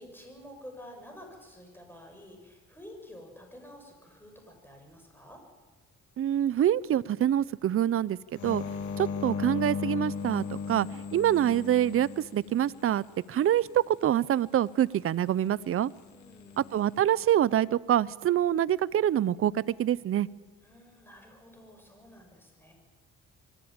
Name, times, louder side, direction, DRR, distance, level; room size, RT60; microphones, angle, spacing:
voice 1, 0.0-5.4 16.1-16.6 20.6-22.7, left 1 dB, 5° left, 2 dB, 6.9 m, -50 dB
voice 2, 6.2-8.2 8.4-8.6 9.0-15.9 16.6-20.3, right 11 dB, 45° right, 20 dB, 0.6 m, -26 dB
sound 1, 8.4-13.0 16.3-16.8, left 5 dB, 75° left, 1.9 m, -36 dB
24.0 x 15.0 x 8.9 m, 1.3 s
cardioid pair, 90°, 30 cm